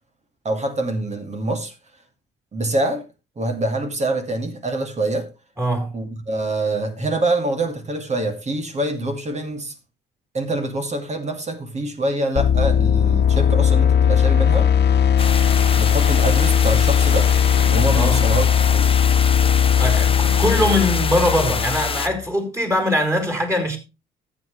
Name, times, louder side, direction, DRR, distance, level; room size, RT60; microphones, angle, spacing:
voice 1, 0.4-1.7 2.5-3.0 3.4-5.3 5.9-9.7 10.3-14.7 15.8-17.3 17.7-18.5 18.7-18.9, right 2 dB, 35° right, 2.5 m, -25 dB
voice 2, 5.6-6.0 17.9-18.2 19.8-23.8, left 1 dB, 15° right, 4.6 m, -22 dB
sound 1, 12.4-22.2, left 8 dB, 55° left, 1.5 m, -18 dB
sound 2, 15.2-22.1, left 5 dB, 25° left, 1.0 m, -27 dB
14.0 x 8.2 x 3.2 m
cardioid pair, 90°, 20 cm